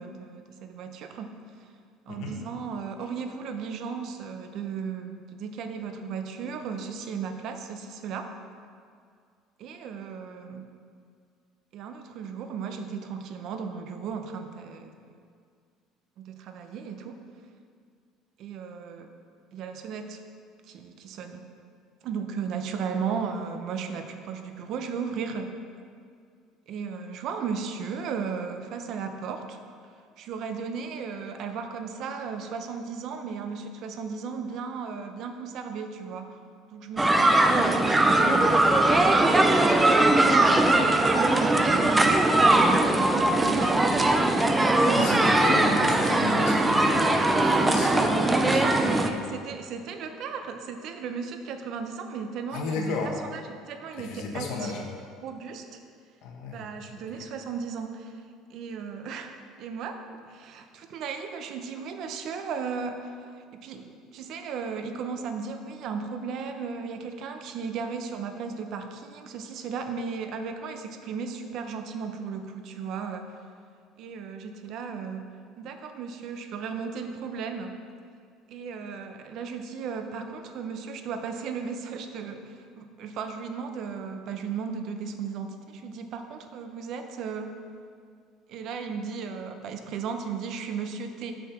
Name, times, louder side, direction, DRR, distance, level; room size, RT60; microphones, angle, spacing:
voice 1, 0.0-1.4 2.1-8.3 9.6-10.6 11.7-15.2 16.2-17.2 18.4-19.1 19.5-20.2 20.6-21.4 22.0-25.5 26.7-29.6 30.2-36.4 36.7-44.2 47.5-47.9 48.6-54.7 55.2-55.8 56.5-58.2 58.5-59.3 59.6-73.4 74.0-77.8 78.5-87.5 88.5-91.4, right 5 dB, 45° right, 6 dB, 0.7 m, -36 dB
sound 1, 37.0-49.1, right 2 dB, 10° right, 0.4 m, -20 dB
voice 2, 44.9-49.5 52.5-53.1 54.0-54.8 56.2-56.7, left 3 dB, 60° left, 0 dB, 1.3 m, -33 dB
6.6 x 6.4 x 5.9 m, 2.2 s
cardioid pair, 170°, 0 cm